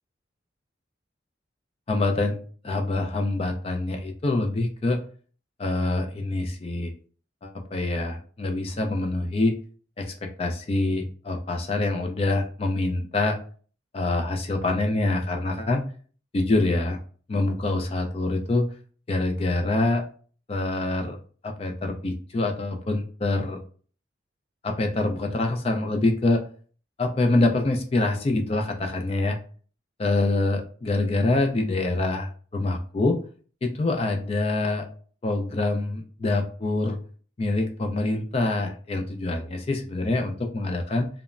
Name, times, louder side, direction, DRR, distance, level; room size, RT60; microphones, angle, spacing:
voice 1, 1.9-2.4 2.6-5.0 5.6-6.9 7.4-9.5 10.0-13.4 13.9-15.8 16.3-17.0 17.3-18.7 19.1-20.0 20.5-21.2 21.4-23.6 24.6-26.4 27.0-29.4 30.0-33.2 33.6-34.8 35.2-37.0 37.4-41.1, left 2 dB, 30° left, 4 dB, 0.3 m, -25 dB
3.1 x 2.0 x 2.3 m, 0.43 s
head